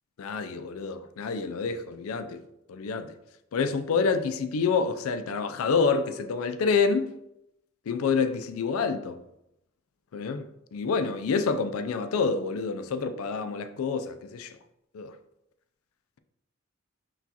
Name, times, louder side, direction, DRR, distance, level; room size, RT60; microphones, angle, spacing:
voice 1, 0.2-2.4 2.7-3.1 3.5-7.1 7.9-9.2 10.1-10.4 10.7-14.5 14.9-15.1, left 5 dB, 75° left, 0.4 m, -27 dB
5.9 x 2.4 x 2.8 m
head